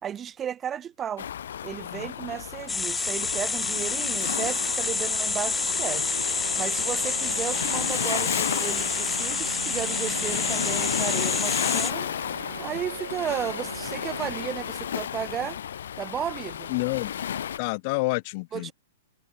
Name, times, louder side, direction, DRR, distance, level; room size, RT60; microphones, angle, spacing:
voice 1, 0.0-1.3 1.6-6.1 6.6-12.1 12.6-15.6 16.0-16.7 18.5-18.7, right 9 dB, 20° right, 1.4 m, -34 dB
Waves surf, 1.2-17.6, left 9 dB, 70° left, 5.2 m, -33 dB
sound 1, 2.7-11.9, left 4 dB, 10° left, 1.4 m, -28 dB
Organ, 4.3-15.2, right 8 dB, 75° right, 5.1 m, -42 dB
voice 2, 16.7-17.2 17.6-18.7, left 28 dB, 45° left, 0.9 m, -28 dB
hypercardioid pair, 120°, 0 cm